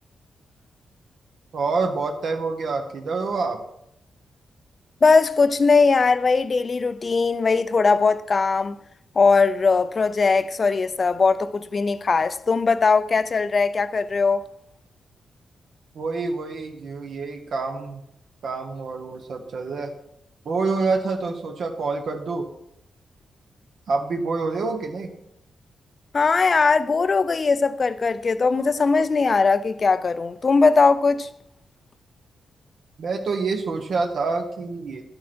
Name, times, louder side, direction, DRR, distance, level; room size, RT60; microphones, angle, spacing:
voice 1, 1.5-3.6 15.9-18.0 18.4-19.9 20.4-22.5 23.9-25.1 33.0-35.0, right 4 dB, 60° right, 1.2 m, -27 dB
voice 2, 5.0-8.8 9.2-14.4 26.1-31.3, left 4 dB, 35° left, 0.5 m, -20 dB
12.5 x 9.4 x 4.4 m
wide cardioid pair, 170°, 0 cm